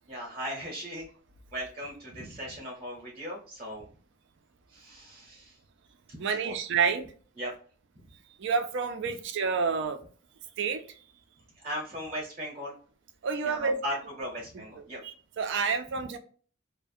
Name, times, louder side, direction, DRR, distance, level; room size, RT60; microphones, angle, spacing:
voice 1, 0.1-1.1 1.5-3.9 4.7-5.6 6.1-6.6 7.4-7.5 8.0-8.1 9.1-9.2 11.5-12.7 13.4-15.0, equal, 30° right, 0.7 m, -38 dB
voice 2, 6.2-7.0 8.4-10.0 10.6-10.8 13.2-13.8 15.0-16.2, right 5 dB, 65° right, 0.4 m, -28 dB
2.4 x 2.1 x 2.6 m
head